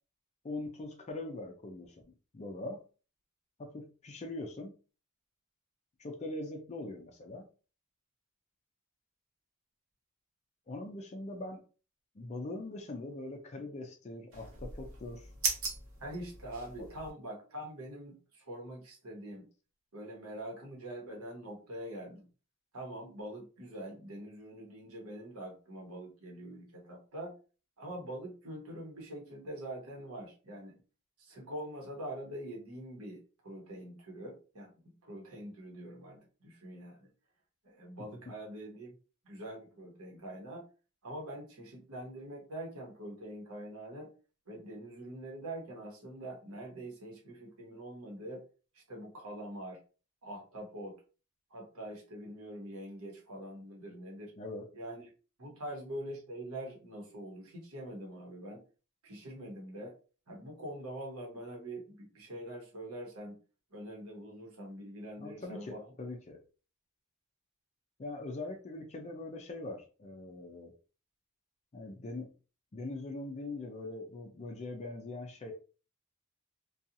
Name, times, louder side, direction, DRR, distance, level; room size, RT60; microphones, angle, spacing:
voice 1, 0.4-2.8 3.6-4.7 6.0-7.5 10.7-11.6 12.2-15.3 16.8-16.9 54.4-54.6 65.2-66.4 68.0-70.7 71.7-72.3 72.7-75.5, left 2 dB, 30° left, 2 dB, 0.4 m, -42 dB
sound 1, 14.3-17.1, right 4 dB, 65° right, 0.8 m, -38 dB
voice 2, 16.0-19.5 19.9-22.3 22.7-27.4 27.8-30.7 31.2-37.1 37.6-39.0 39.2-40.7 41.0-44.1 44.5-48.4 48.7-49.8 50.2-51.0 51.5-54.3 54.7-55.1 55.4-58.6 59.0-59.9 60.3-63.4 63.7-65.9, right 1 dB, 85° right, -1 dB, 1.0 m, -44 dB
2.7 x 2.3 x 2.5 m, 0.36 s
head